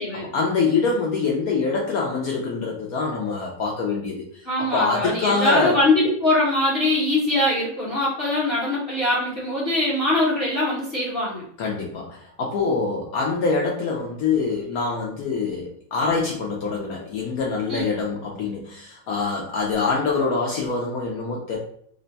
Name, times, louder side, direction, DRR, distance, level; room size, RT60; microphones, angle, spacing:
voice 1, 0.1-4.2 4.6-5.8 11.6-21.6, left 4 dB, 80° left, -1 dB, 0.8 m, -25 dB
voice 2, 4.4-11.4 17.7-17.9, left 1 dB, 45° left, -8 dB, 0.7 m, -22 dB
3.3 x 2.2 x 3.9 m, 0.67 s
omnidirectional pair, 2.2 m